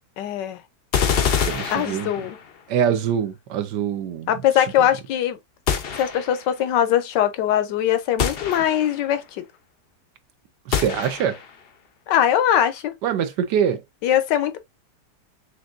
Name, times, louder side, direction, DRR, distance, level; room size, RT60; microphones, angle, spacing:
voice 1, 0.2-0.6 1.7-2.4 4.3-5.4 5.9-9.4 12.1-13.0 14.0-14.6, left 10 dB, 85° left, 1.4 m, -21 dB
sound 1, 0.9-2.6 5.7-6.5 8.2-9.1 10.7-11.6, left 7 dB, 60° left, 0.6 m, -25 dB
voice 2, 1.5-2.1 2.7-4.3 10.7-11.4 13.0-13.8, right 8 dB, 80° right, 1.3 m, -24 dB
6.1 x 2.7 x 2.4 m
omnidirectional pair, 1.8 m